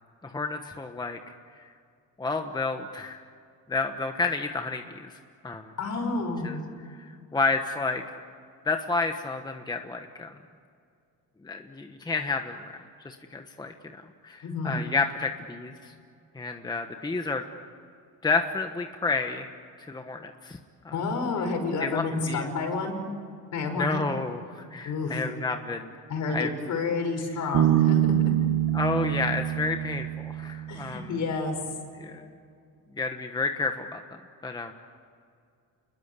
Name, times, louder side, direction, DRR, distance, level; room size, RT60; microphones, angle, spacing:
voice 1, 0.2-1.6 2.2-3.2 3.7-5.1 5.4-5.7 6.4-6.6 7.0-8.1 8.6-10.3 11.4-15.9 16.3-17.4 18.2-19.4 19.8-20.6 20.8-20.9 21.8-22.5 23.7-25.9 26.3-26.5 28.7-31.1 32.0-32.2 33.0-34.7, left 4 dB, 10° left, 5 dB, 1.2 m, -30 dB
voice 2, 5.8-6.6 14.4-14.8 20.9-23.0 23.5-24.0 24.8-25.2 26.1-28.1 30.7-31.6, left 3 dB, 55° left, 4 dB, 5.6 m, -29 dB
Bass guitar, 27.5-31.0, right 11 dB, 70° right, 1.5 m, -25 dB
29.5 x 21.5 x 8.3 m, 2.3 s
cardioid pair, 150°, 35 cm